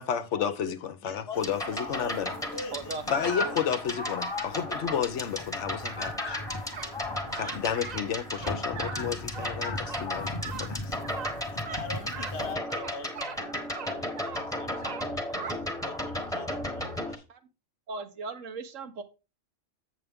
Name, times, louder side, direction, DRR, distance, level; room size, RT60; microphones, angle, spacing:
voice 1, 0.0-2.3 3.1-6.4 7.3-10.9, left 8 dB, 70° left, 1.0 m, -32 dB
voice 2, 1.0-2.2 2.5-3.2 4.5-4.8 6.3-6.5 11.6-17.2, left 3 dB, 55° left, 1.3 m, -44 dB
sound 1, 1.3-17.2, left 1 dB, 5° left, 1.0 m, -35 dB
sound 2, 1.4-12.5, left 2 dB, 25° left, 0.8 m, -38 dB
voice 3, 2.7-3.0 17.3-17.4 17.9-19.0, right 3 dB, 85° right, 1.4 m, -37 dB
sound 3, 6.7-6.9 7.3-8.0 8.3-9.0 9.3-9.5 9.8-10.0 10.4-10.7 11.0-11.3 11.6-11.8 12.1-12.4 12.7-13.4 13.7-14.4 14.8-15.5, right 7 dB, 45° right, 0.6 m, -40 dB
8.0 x 6.7 x 3.5 m
omnidirectional pair, 1.3 m